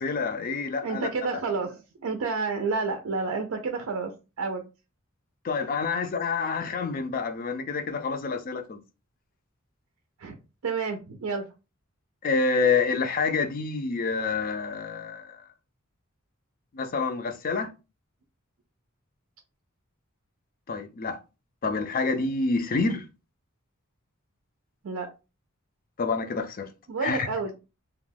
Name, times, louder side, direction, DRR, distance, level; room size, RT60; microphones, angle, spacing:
voice 1, 0.0-1.1 5.4-8.8 12.2-15.4 16.7-17.7 20.7-21.2 21.6-23.1 26.0-26.7 27.0-27.3, left 4 dB, 45° left, 0.4 m, -27 dB
voice 2, 0.8-4.1 4.4-4.6 10.2-11.5 24.8-25.1 26.9-27.6, right 4 dB, 85° right, 0.4 m, -30 dB
2.3 x 2.2 x 3.3 m
head